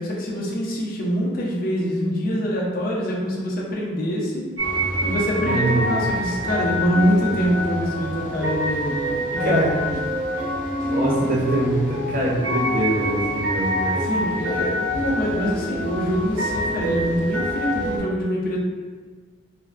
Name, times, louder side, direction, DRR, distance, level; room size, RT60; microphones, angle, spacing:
voice 1, 0.0-4.4 5.0-9.9 14.0-18.6, equal, 45° left, -3 dB, 0.5 m, -25 dB
sound 1, 4.6-18.0, equal, 70° right, 0.8 m, -26 dB
voice 2, 5.4-5.9 9.4-9.7 10.8-14.0, right 1 dB, 45° right, -4 dB, 0.6 m, -23 dB
3.3 x 2.1 x 2.4 m, 1.5 s
head